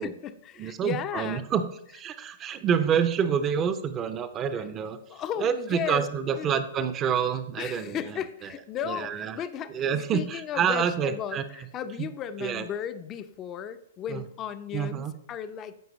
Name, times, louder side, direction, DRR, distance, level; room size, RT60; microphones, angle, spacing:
voice 1, 0.0-1.5 5.1-6.1 6.4-6.5 7.6-15.8, left 9 dB, 30° left, 11 dB, 0.6 m, -35 dB
voice 2, 0.6-1.6 1.9-5.0 5.4-8.0 8.8-9.4 9.7-11.4 12.0-12.1 12.4-12.7 14.1-14.2 14.7-15.1, right 7 dB, 25° right, 11 dB, 0.6 m, -27 dB
13.5 x 4.5 x 3.1 m, 0.75 s
hypercardioid pair, 120°, 0 cm